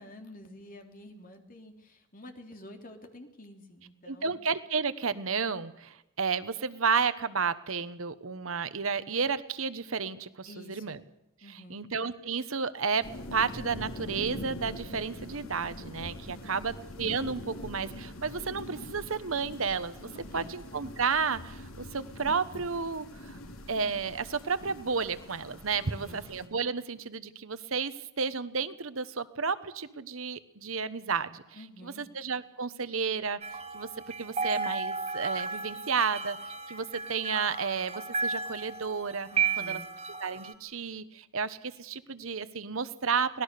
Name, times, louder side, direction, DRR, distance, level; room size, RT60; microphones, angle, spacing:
voice 1, 0.0-4.4 10.5-11.0 11.4-11.8 16.3-16.6 20.3-20.5 25.8-26.3 31.5-32.1 39.3-39.9, left 1 dB, 40° left, 4 dB, 3.1 m, -49 dB
voice 2, 4.1-11.0 11.7-23.4 23.7-31.4 31.8-33.4 33.7-33.9 34.2-36.4 36.7-39.3 39.6-39.8 40.2-43.4, right 5 dB, 70° right, 13 dB, 1.2 m, -32 dB
sound 1, 13.0-26.5, left 1 dB, 75° left, 3.0 m, -43 dB
sound 2, 33.4-40.5, right 5 dB, 30° right, 1.5 m, -34 dB
24.5 x 18.5 x 6.8 m, 0.88 s
head